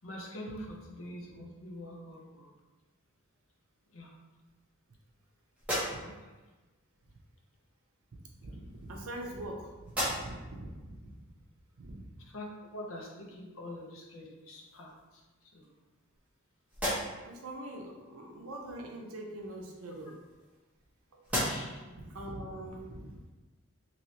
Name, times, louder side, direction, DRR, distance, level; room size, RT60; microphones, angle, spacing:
voice 1, 0.0-2.5 3.9-4.2 5.8-6.3 12.2-15.8 21.4-22.0, left 1 dB, 65° left, -1 dB, 0.7 m, -45 dB
sound 1, 5.5-6.4 7.5-7.7 8.6-9.5 9.8-10.6 11.1-11.2 13.8-13.9 14.4-15.0 15.6-16.4 16.7-17.4 19.4-20.9 21.2-21.9, equal, 5° right, 1.0 m, -37 dB
voice 2, 8.3-11.1 11.8-12.0 17.2-20.1 21.1-21.4 22.1-23.3, right 1 dB, 80° right, 0 dB, 0.6 m, -43 dB
3.1 x 3.0 x 2.8 m, 1.2 s
head